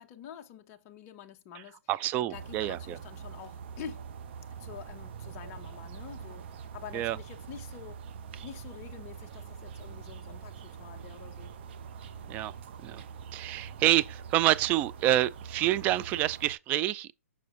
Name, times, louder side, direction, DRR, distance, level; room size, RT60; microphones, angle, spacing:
voice 1, 0.0-4.1 4.6-8.0 8.4-11.5, left 8 dB, 25° left, 0.8 m, -47 dB
voice 2, 1.9-3.0 6.9-7.2 12.3-12.5 12.8-13.0 13.3-17.1, right 14 dB, 20° right, 0.3 m, -27 dB
sound 1, 2.3-16.6, right 6 dB, 45° right, 0.9 m, -44 dB
6.7 x 5.9 x 2.6 m
hypercardioid pair, 145°, 8 cm